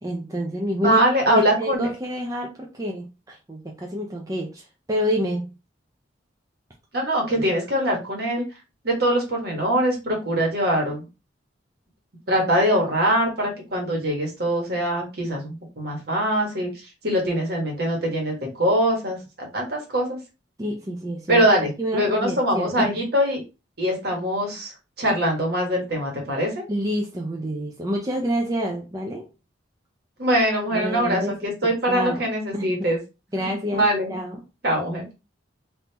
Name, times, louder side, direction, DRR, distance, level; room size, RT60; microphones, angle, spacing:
voice 1, 0.0-1.0 1.3-5.5 20.6-22.9 26.7-29.3 30.7-32.2 32.5-32.7 33.3-34.4, equal, 20° right, 0.5 m, -28 dB
voice 2, 0.8-1.9 6.9-8.5 8.8-11.0 12.3-16.7 17.0-20.2 21.3-23.4 23.8-24.7 25.0-26.6 30.2-33.0 33.4-34.1 34.6-35.1, equal, 55° right, 1.4 m, -23 dB
3.5 x 2.7 x 2.9 m
head